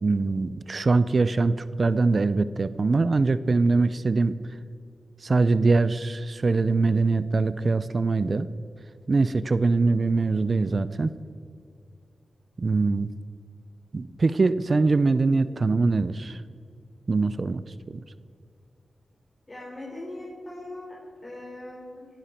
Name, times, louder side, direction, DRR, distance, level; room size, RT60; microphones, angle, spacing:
voice 1, 0.0-4.4 5.2-8.5 9.1-11.1 12.6-13.1 13.9-16.4 17.1-18.0, right 3 dB, 50° right, 15 dB, 0.5 m, -23 dB
voice 2, 19.5-21.0 21.2-22.1, left 1 dB, 35° left, -4 dB, 3.7 m, -40 dB
18.5 x 12.0 x 4.4 m, 2.4 s
cardioid pair, 55°, 0 cm